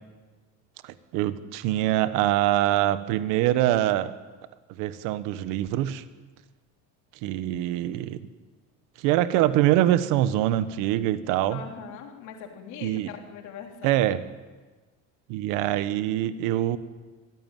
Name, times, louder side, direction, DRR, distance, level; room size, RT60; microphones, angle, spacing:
voice 1, 0.8-4.1 4.7-6.0 7.2-8.3 9.0-11.6 12.8-13.1 13.8-14.2 15.3-16.8, right 13 dB, 60° right, 13 dB, 1.4 m, -24 dB
voice 2, 11.5-14.1, left 7 dB, 55° left, 3 dB, 3.7 m, -41 dB
24.5 x 15.5 x 9.3 m, 1.3 s
cardioid pair, 175°, 35 cm